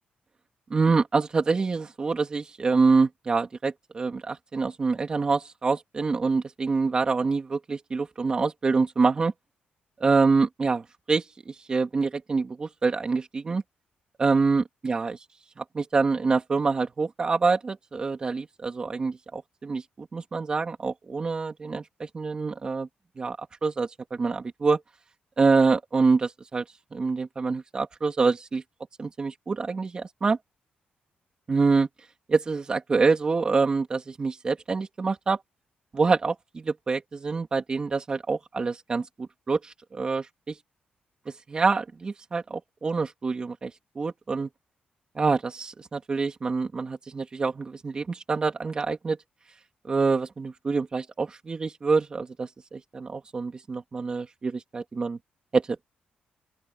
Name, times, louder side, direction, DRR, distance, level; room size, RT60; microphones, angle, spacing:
voice 1, 0.7-9.3 10.0-13.6 14.2-15.2 15.6-22.9 23.2-24.8 25.4-26.6 26.9-28.6 29.0-30.4 31.5-31.9 32.3-35.4 35.9-40.5 41.5-44.5 45.1-49.2 49.8-55.2 55.5-55.8, right 4 dB, 25° right, 3.4 m, -26 dB
open air
wide cardioid pair, 170°, 3 cm